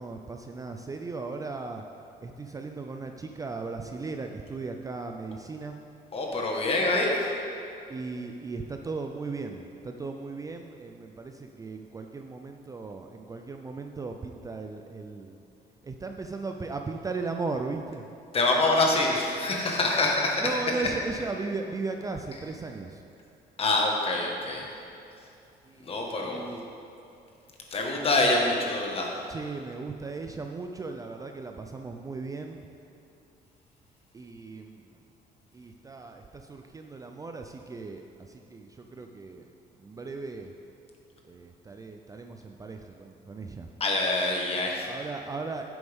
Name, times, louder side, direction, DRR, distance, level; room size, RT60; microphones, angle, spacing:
voice 1, 0.0-1.8 2.2-5.8 7.9-15.4 15.8-18.0 20.4-23.0 25.7-26.7 28.1-28.2 29.3-32.6 34.1-34.8 35.5-38.0 38.5-39.4 39.8-40.5 41.3-43.7 44.9-45.7, right 3 dB, 20° right, 4 dB, 0.4 m, -37 dB
voice 2, 6.1-7.2 18.3-20.4 20.8-20.9 23.6-24.6 25.8-26.4 27.7-29.1 43.8-44.9, left 2 dB, 35° left, 0 dB, 1.6 m, -25 dB
10.5 x 7.9 x 3.6 m, 2.6 s
cardioid pair, 110°, 17 cm